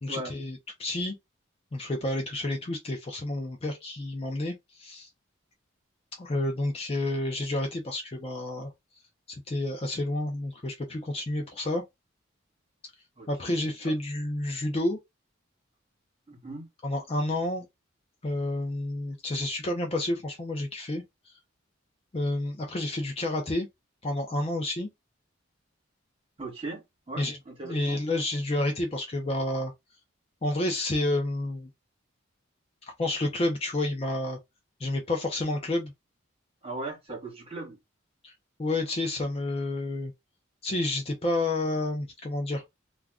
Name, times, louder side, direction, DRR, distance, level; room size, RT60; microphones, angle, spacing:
voice 1, 0.0-1.2 1.7-5.1 6.2-8.7 9.5-11.8 13.3-15.0 16.8-17.7 18.2-21.0 22.1-23.7 24.0-24.9 27.2-27.4 27.6-29.7 30.4-31.7 33.0-34.4 34.8-35.9 38.2-38.3 38.6-40.1 40.6-42.6, left 1 dB, 30° left, 0.5 m, -30 dB
voice 2, 13.2-13.7 16.3-16.7 26.4-28.0 36.6-37.8, right 2 dB, 30° right, 1.2 m, -39 dB
2.4 x 2.2 x 3.5 m
head